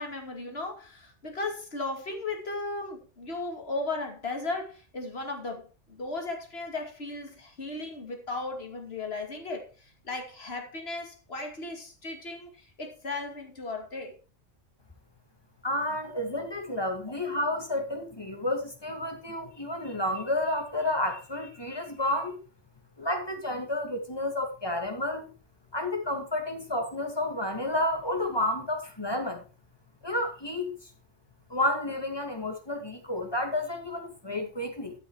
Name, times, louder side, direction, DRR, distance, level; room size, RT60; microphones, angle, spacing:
voice 1, 0.0-5.6 5.9-14.2 16.1-16.3, left 2 dB, 55° left, 2.7 m, -36 dB
voice 2, 15.6-22.4 23.0-25.3 25.7-29.4 30.0-30.7 31.5-34.9, left 1 dB, 20° left, 2.2 m, -30 dB
12.5 x 6.7 x 4.8 m
omnidirectional pair, 1.3 m